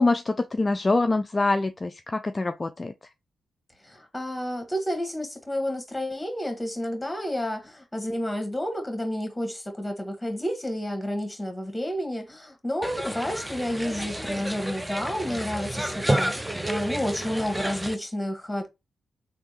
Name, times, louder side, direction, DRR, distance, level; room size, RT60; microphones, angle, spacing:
voice 1, 0.0-2.9, left 3 dB, 35° left, 0.3 m, -24 dB
voice 2, 3.8-18.7, equal, 10° left, 1.4 m, -30 dB
sound 1, 12.8-18.0, right 1 dB, 10° right, 0.5 m, -30 dB
3.4 x 2.6 x 3.0 m
supercardioid pair, 40°, 0 cm